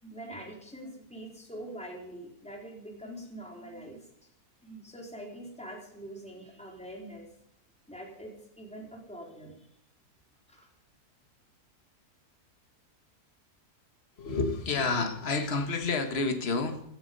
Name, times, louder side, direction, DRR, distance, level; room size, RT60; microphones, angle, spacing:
voice 1, 0.0-4.3 4.6-7.3 7.9-9.7 10.5-10.7, right 1 dB, 5° left, -1 dB, 4.2 m, -44 dB
voice 2, 14.2-16.8, left 3 dB, 40° left, 6 dB, 1.9 m, -29 dB
17.5 x 13.0 x 5.5 m, 0.73 s
omnidirectional pair, 1.7 m